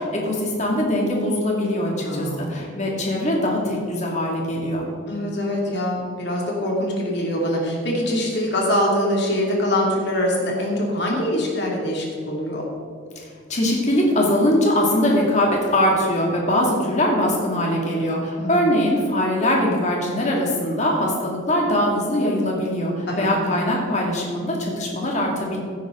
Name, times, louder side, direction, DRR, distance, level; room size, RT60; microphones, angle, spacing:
voice 1, 0.0-4.9 13.5-25.6, left 1 dB, 35° left, -2 dB, 2.4 m, -22 dB
voice 2, 2.0-2.5 5.1-12.6 18.4-18.7 23.1-23.3, left 1 dB, 55° left, -2 dB, 2.8 m, -24 dB
16.0 x 9.3 x 3.9 m, 2.3 s
head